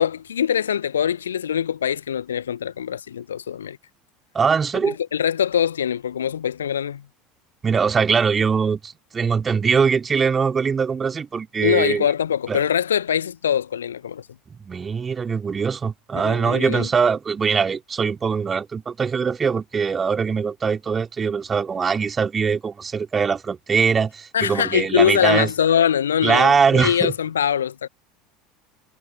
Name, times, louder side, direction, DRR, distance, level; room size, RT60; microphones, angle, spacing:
voice 1, 0.0-3.8 4.9-7.0 11.6-14.2 16.1-16.9 24.3-27.9, left 9 dB, 75° left, 1.3 m, -23 dB
voice 2, 4.3-5.0 7.6-12.1 12.5-12.6 14.6-25.5 26.2-27.1, right 6 dB, 25° right, 3.7 m, -22 dB
figure-of-eight pair, 75°, 0 cm